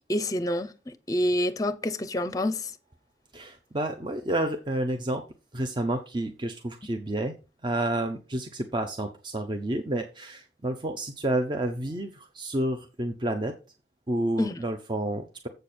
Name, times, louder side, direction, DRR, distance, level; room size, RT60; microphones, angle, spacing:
voice 1, 0.1-2.7 14.4-14.6, left 1 dB, 20° left, 0.7 m, -28 dB
voice 2, 3.3-5.2 5.5-7.3 7.6-13.5 14.1-15.5, right 1 dB, 25° right, 0.7 m, -30 dB
7.7 x 6.7 x 4.4 m
head